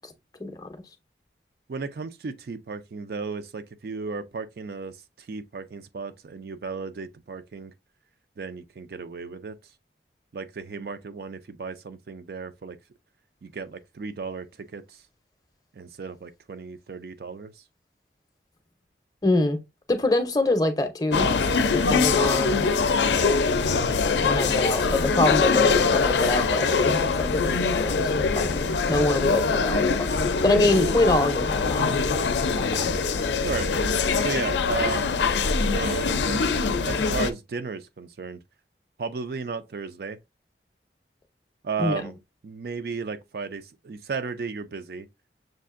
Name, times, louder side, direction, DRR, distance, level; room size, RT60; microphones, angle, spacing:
voice 1, 1.7-7.7 8.4-9.6 10.3-12.8 13.4-15.0 15.7-17.6 21.6-21.9 32.8-33.0 33.4-33.7 34.2-35.1 35.6-38.4 39.0-40.2 41.6-42.2 42.4-45.1, right 4 dB, 55° right, 0.4 m, -34 dB
voice 2, 19.2-19.6 19.9-21.3 21.7-22.7 24.2-31.9 32.6-32.7 41.8-42.0, left 2 dB, 20° left, 0.6 m, -25 dB
sound 1, 21.1-37.3, left 4 dB, 80° left, 0.5 m, -23 dB
6.4 x 2.5 x 2.4 m
head